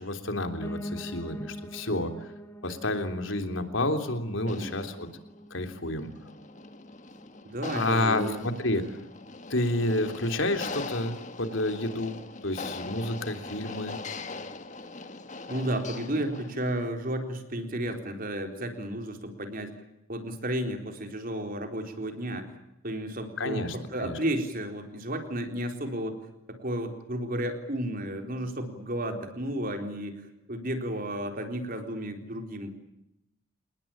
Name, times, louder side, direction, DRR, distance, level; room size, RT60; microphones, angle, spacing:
voice 1, 0.0-2.3 2.6-5.1 5.5-6.1 7.7-8.8 9.5-14.0 23.4-23.8 24.0-24.1, left 1 dB, 65° left, 7 dB, 3.4 m, -30 dB
Piano, 0.6-9.7 10.1-11.3 11.5-11.6 11.9-12.0 12.2-12.3 12.9-13.0, equal, 15° left, 1.7 m, -45 dB
sound 1, 4.4-16.8, left 3 dB, 35° left, 1.7 m, -41 dB
voice 2, 7.4-8.9 15.5-19.7 20.1-22.6 22.8-26.2 26.5-32.7, right 1 dB, 40° right, 6 dB, 4.0 m, -33 dB
28.5 x 20.0 x 8.9 m, 0.85 s
head